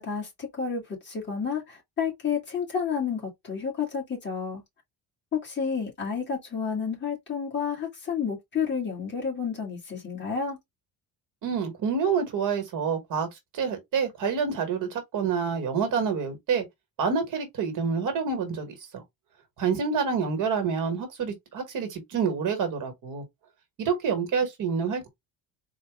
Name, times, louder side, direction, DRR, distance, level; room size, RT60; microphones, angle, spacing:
voice 1, 0.0-4.6 5.3-10.6, left 6 dB, 30° left, 1.8 m, -30 dB
voice 2, 11.4-13.3 13.5-16.6 17.0-19.0 19.6-23.2 23.8-25.1, right 6 dB, 55° right, 1.4 m, -27 dB
4.1 x 2.4 x 3.5 m
cardioid pair, 165°, 38 cm